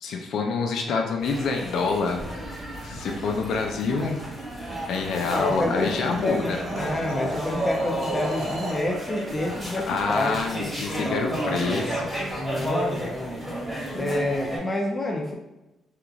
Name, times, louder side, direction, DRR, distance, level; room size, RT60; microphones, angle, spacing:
voice 1, 0.0-2.3 2.8-4.3 4.9-6.6 9.9-12.1, left 4 dB, 70° left, 3 dB, 0.4 m, -27 dB
sound 1, 1.2-14.6, right 1 dB, 10° right, 1.4 m, -32 dB
Thunderstorm, 2.2-12.4 12.7-12.8, right 1 dB, 85° right, 1.0 m, -46 dB
sound 2, 4.5-8.9, right 1 dB, 55° right, 0.7 m, -36 dB
voice 2, 5.3-6.4 6.7-9.9 10.2-10.4 12.3-13.4 14.0-15.3, left 1 dB, 20° left, 0 dB, 0.6 m, -28 dB
2.9 x 2.4 x 2.4 m, 0.97 s
cardioid pair, 110°, 0 cm